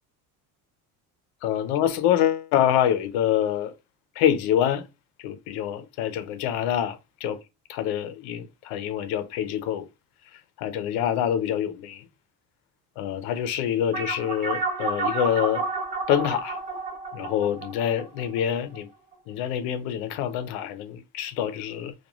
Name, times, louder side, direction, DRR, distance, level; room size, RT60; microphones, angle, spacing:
voice 1, 1.4-3.7 4.2-4.9 5.2-7.4 7.7-9.9 10.3-12.1 13.0-15.7 16.1-16.6 17.1-18.9 19.3-21.9, left 10 dB, 80° left, 0.6 m, -26 dB
sound 1, 13.9-18.8, right 3 dB, 25° right, 0.7 m, -30 dB
3.0 x 2.3 x 2.3 m
cardioid pair, 160°, 39 cm